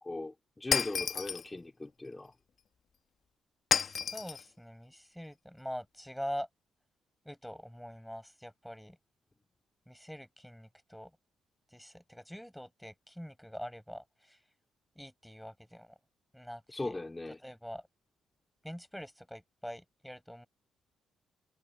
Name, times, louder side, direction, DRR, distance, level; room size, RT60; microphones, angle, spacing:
voice 1, 0.0-2.3 16.7-17.4, left 2 dB, 15° left, 3.9 m, -39 dB
Shatter, 0.7-1.5 3.7-4.4, left 7 dB, 55° left, 1.3 m, -30 dB
voice 2, 3.8-6.5 7.2-9.0 9.9-11.1 11.7-14.4 15.0-15.9 16.3-17.0 17.4-17.8 18.6-20.5, equal, ahead, 6.4 m, -44 dB
cardioid pair, 90°, 0 cm